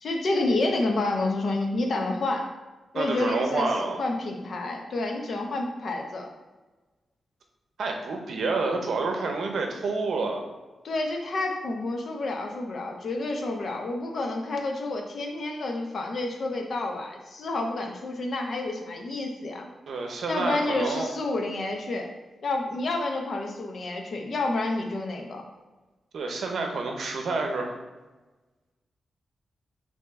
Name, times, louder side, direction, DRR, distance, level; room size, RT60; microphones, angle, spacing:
voice 1, 0.0-2.5 2.9-6.3 10.8-19.7 20.3-22.1 22.4-25.4, left 2 dB, 60° left, 2 dB, 0.7 m, -29 dB
voice 2, 2.9-4.0 7.8-10.4 19.9-21.1 26.1-27.7, right 3 dB, 75° right, 3 dB, 0.7 m, -28 dB
4.4 x 2.8 x 4.1 m, 1.2 s
wide cardioid pair, 130°, 0 cm